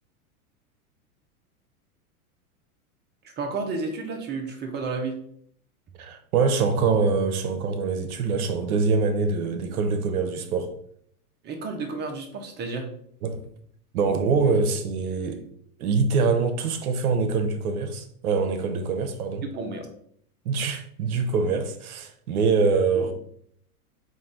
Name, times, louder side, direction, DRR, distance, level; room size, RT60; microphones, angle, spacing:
voice 1, 3.2-5.2 11.4-12.9 19.4-19.9 22.9-23.1, right 3 dB, 20° right, 0.8 m, -31 dB
voice 2, 6.0-10.8 13.2-13.4 13.9-15.5 15.8-19.5 20.4-23.1, right 4 dB, 70° right, 0.9 m, -24 dB
5.2 x 2.6 x 3.7 m
hypercardioid pair, 125°, 45 cm